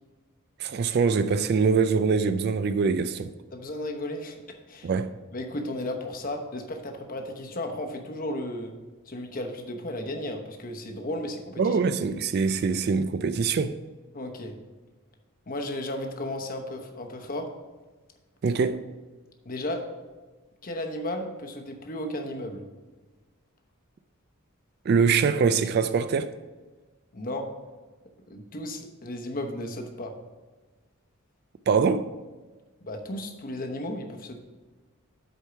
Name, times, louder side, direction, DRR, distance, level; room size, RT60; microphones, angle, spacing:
voice 1, 0.6-3.3 4.8-5.1 11.6-13.8 18.4-18.8 24.9-26.3 31.7-32.1, right 5 dB, 50° right, 0.3 m, -23 dB
voice 2, 3.5-4.4 4.7-4.9 5.3-8.7 9.1-11.8 14.1-14.5 15.5-17.5 19.4-19.8 20.6-22.6 27.1-27.5 28.3-30.1 32.8-34.4, left 1 dB, 40° left, 0.9 m, -34 dB
8.1 x 4.6 x 5.7 m
head